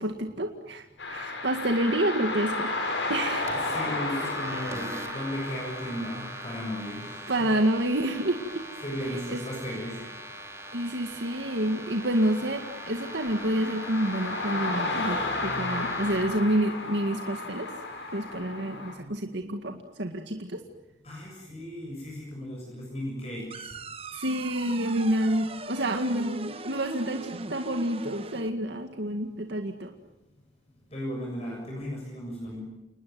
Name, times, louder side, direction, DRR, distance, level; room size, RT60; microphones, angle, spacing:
voice 1, 0.0-3.5 7.3-8.6 9.3-9.4 10.7-17.7 18.1-20.6 24.1-29.9, right 1 dB, 75° right, 4 dB, 2.1 m, -28 dB
sound 1, 1.0-18.9, left 2 dB, 80° left, 7.4 m, -34 dB
sound 2, 3.5-16.2, right 2 dB, 15° right, 3.3 m, -43 dB
voice 2, 3.6-7.3 8.8-9.9 21.0-23.7 30.9-32.6, equal, 35° left, -1 dB, 7.3 m, -35 dB
sound 3, 23.5-28.5, right 3 dB, 30° right, 1.1 m, -40 dB
29.0 x 20.0 x 9.5 m, 0.94 s
head